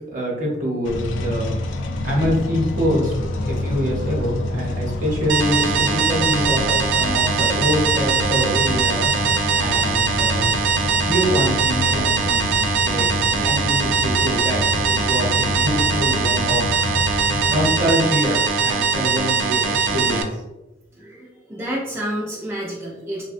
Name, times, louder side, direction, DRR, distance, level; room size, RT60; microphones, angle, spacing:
voice 1, 0.1-1.6 2.0-3.1 3.4-10.5 11.0-16.6 17.5-20.4, equal, 45° right, -3 dB, 0.8 m, -25 dB
sound 1, 0.8-17.9, left 2 dB, 90° left, 0.3 m, -27 dB
sound 2, 5.3-20.2, right 5 dB, 80° right, 0.4 m, -21 dB
voice 2, 20.9-23.2, equal, 15° right, -6 dB, 0.4 m, -29 dB
3.3 x 2.1 x 2.4 m, 1.0 s
head